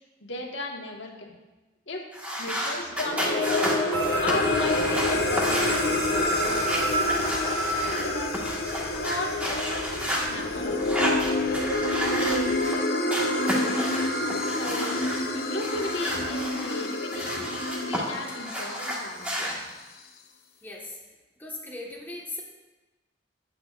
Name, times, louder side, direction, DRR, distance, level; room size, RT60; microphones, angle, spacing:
voice 1, 0.2-1.4 1.9-2.0 2.4-3.8 4.2-7.3 7.8-8.3 8.9-11.3 11.9-13.9 14.5-15.0 15.3-17.4 17.7-19.4, left 2 dB, 75° left, -1 dB, 1.7 m, -36 dB
sound 1, 2.1-8.0 8.3-10.3 10.8-12.8 13.1-15.2 15.6-18.0 18.3-19.5, equal, 10° right, 1.6 m, -32 dB
sound 2, 2.9-19.4, left 2 dB, 55° left, 0.9 m, -28 dB
sound 3, 3.9-12.6, right 2 dB, 65° right, 1.8 m, -33 dB
voice 2, 20.6-21.0 21.4-22.4, left 2 dB, 10° left, -3 dB, 1.5 m, -38 dB
15.0 x 8.9 x 2.5 m, 1.1 s
head